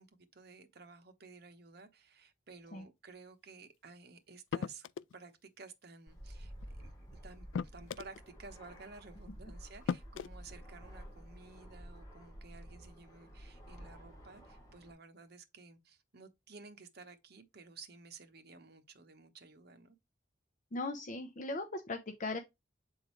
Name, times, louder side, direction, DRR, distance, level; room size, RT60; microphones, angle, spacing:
voice 1, 0.0-4.9 5.1-20.0, right 4 dB, 60° right, 1.1 m, -54 dB
sound 1, 4.5-5.2 6.6-6.7 7.5-8.2 9.3-9.4 9.9-10.3, left 6 dB, 75° left, 0.3 m, -37 dB
Fixed-wing aircraft airplane, 6.1-14.9, equal, 20° left, 2.3 m, -51 dB
voice 2, 20.7-22.4, left 2 dB, 45° left, 0.7 m, -38 dB
7.9 x 3.8 x 3.1 m
head